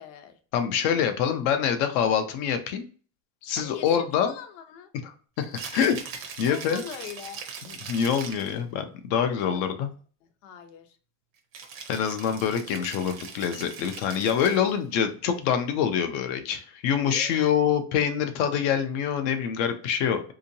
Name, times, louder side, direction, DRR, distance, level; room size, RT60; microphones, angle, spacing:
voice 1, 0.0-0.4 3.5-4.9 6.5-7.4 9.2-9.9 10.2-11.0 16.9-17.7, left 9 dB, 70° left, 6 dB, 0.8 m, -42 dB
voice 2, 0.5-2.9 3.4-4.3 5.0-6.0 6.4-6.8 7.9-9.9 11.9-20.2, left 8 dB, 40° left, 8 dB, 0.4 m, -25 dB
Rattle (instrument), 5.4-8.6 11.5-14.8, right 6 dB, 50° right, 0.8 m, -41 dB
3.5 x 2.8 x 2.6 m, 0.39 s
supercardioid pair, 160°, 39 cm